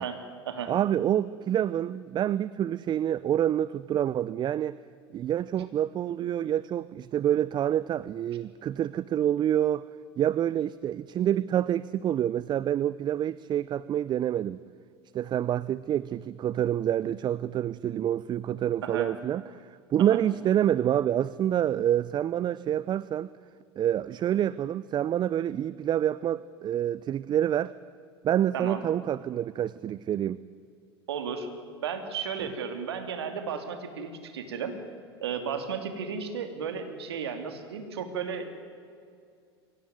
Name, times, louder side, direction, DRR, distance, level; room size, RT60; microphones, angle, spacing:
voice 1, 0.0-0.7 18.8-19.1 20.0-20.2 28.5-28.8 31.1-34.7 35.2-38.7, right 6 dB, 75° right, 7 dB, 2.9 m, -34 dB
voice 2, 0.7-4.8 5.1-9.9 10.2-14.6 15.1-23.3 23.8-27.7 28.2-30.4, right 10 dB, 35° right, 18 dB, 0.6 m, -27 dB
24.0 x 17.5 x 9.5 m, 2.3 s
hypercardioid pair, 80°, 13 cm